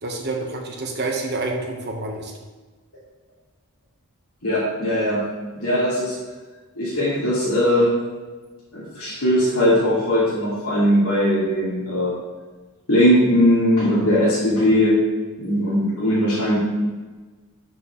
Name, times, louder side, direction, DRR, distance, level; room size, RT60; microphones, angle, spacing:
voice 1, 0.0-2.3, right 2 dB, 50° right, 1 dB, 1.3 m, -28 dB
voice 2, 4.4-5.2 5.5-6.1 6.8-7.9 8.7-12.1 12.9-15.0 15.4-16.6, equal, 80° left, -9 dB, 2.4 m, -19 dB
11.5 x 6.0 x 3.2 m, 1.3 s
head